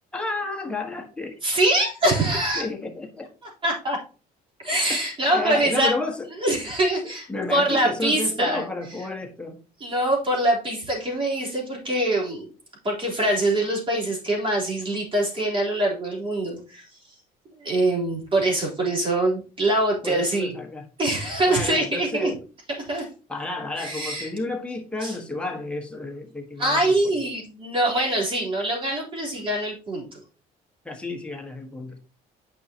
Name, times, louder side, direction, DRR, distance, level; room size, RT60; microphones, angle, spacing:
voice 1, 0.1-1.4 2.5-3.3 5.3-6.3 7.3-9.6 20.0-20.9 21.5-22.4 23.3-26.9 30.8-32.0, left 2 dB, 5° left, 2 dB, 1.4 m, -31 dB
voice 2, 1.4-2.7 3.6-4.0 4.6-6.0 6.4-8.6 9.8-12.5 12.8-17.2 17.6-20.5 21.0-22.3 22.9-23.1 23.8-24.3 25.0-25.1 26.6-30.2, right 1 dB, 30° right, -3 dB, 3.6 m, -24 dB
9.1 x 5.6 x 2.9 m, 0.36 s
cardioid pair, 110°, 17 cm